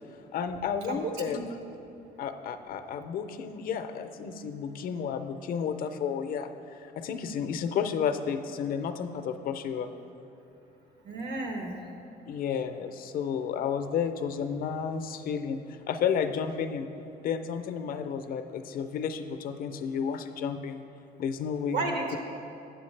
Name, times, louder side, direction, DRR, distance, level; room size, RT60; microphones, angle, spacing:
voice 1, 0.1-1.4 2.2-9.9 12.3-16.9 17.2-20.8 21.2-21.8, left 7 dB, 60° left, 8 dB, 0.5 m, -32 dB
voice 2, 0.8-1.5 11.0-11.8 21.7-22.2, right 3 dB, 75° right, 2 dB, 1.1 m, -32 dB
8.1 x 7.8 x 3.2 m, 2.7 s
cardioid pair, 110°, 17 cm